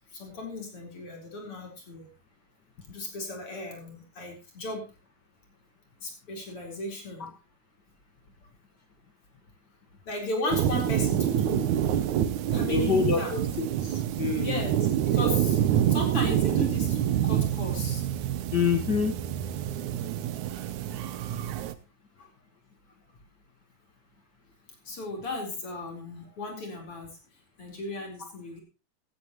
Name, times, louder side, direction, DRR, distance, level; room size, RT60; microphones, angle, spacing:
voice 1, 0.1-2.1 2.9-4.9 6.0-7.3 10.0-11.7 12.5-13.3 14.4-14.8 15.1-18.0 22.2-22.3 24.8-27.1 27.6-28.6, left 2 dB, 35° left, 1 dB, 4.9 m, -36 dB
sound 1, 10.5-21.7, right 10 dB, 90° right, 1.6 m, -27 dB
voice 2, 12.7-14.6 18.5-19.2, left 5 dB, 55° left, 5 dB, 1.1 m, -27 dB
16.0 x 14.0 x 3.1 m, 0.30 s
omnidirectional pair, 4.7 m